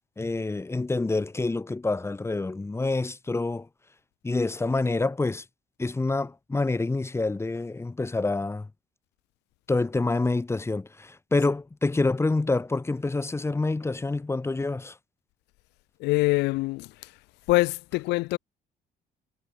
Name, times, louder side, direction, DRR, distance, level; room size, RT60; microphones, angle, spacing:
voice 1, 0.2-3.7 4.2-5.4 5.8-8.7 9.7-15.0, left 3 dB, 15° left, 2.0 m, -27 dB
voice 2, 16.0-16.9 17.5-18.4, left 21 dB, 90° left, 0.8 m, -24 dB
cardioid pair, 110°, 17 cm